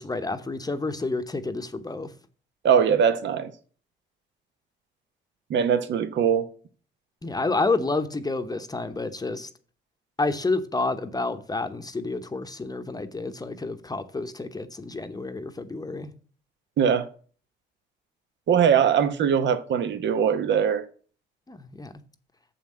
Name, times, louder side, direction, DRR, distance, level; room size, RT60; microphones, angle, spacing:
voice 1, 0.0-2.1 7.2-9.5 10.2-16.1 21.5-21.9, left 3 dB, 20° left, 0.9 m, -29 dB
voice 2, 2.6-3.5 5.5-6.5 16.8-17.1 18.5-20.8, right 8 dB, 65° right, 1.0 m, -21 dB
7.2 x 5.6 x 7.4 m
cardioid pair, 90°, 20 cm